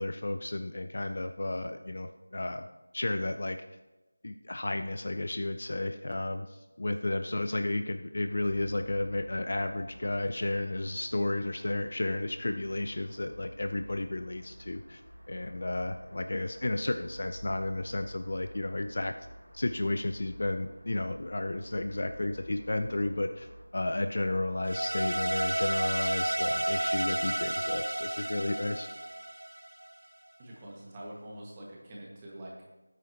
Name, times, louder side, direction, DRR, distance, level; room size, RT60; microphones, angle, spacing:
voice 1, 0.0-2.6 2.9-3.6 4.2-15.0 15.3-19.1 19.5-28.9, left 2 dB, 45° left, 8 dB, 0.5 m, -32 dB
sound 1, 8.2-23.7, equal, 85° right, 2.9 m, -50 dB
sound 2, 24.6-29.9, right 1 dB, 65° right, 0.4 m, -31 dB
voice 2, 30.4-32.6, right 1 dB, 15° right, -4 dB, 1.7 m, -45 dB
17.5 x 9.1 x 2.9 m, 1.1 s
figure-of-eight pair, 170°, 0 cm